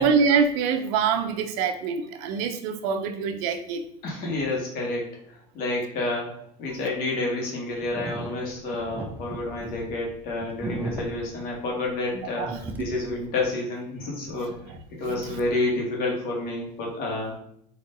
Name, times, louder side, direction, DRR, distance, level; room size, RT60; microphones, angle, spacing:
voice 1, 0.0-3.8 12.1-12.6 15.3-15.4, right 6 dB, 80° right, 7 dB, 0.7 m, -25 dB
voice 2, 4.0-6.3 6.6-14.6 14.9-17.4, left 2 dB, 50° left, -1 dB, 1.6 m, -29 dB
sound 1, 7.8-12.1 12.4-13.2, right 1 dB, 10° right, 0.4 m, -37 dB
4.4 x 3.0 x 3.8 m, 0.69 s
cardioid pair, 155°, 20 cm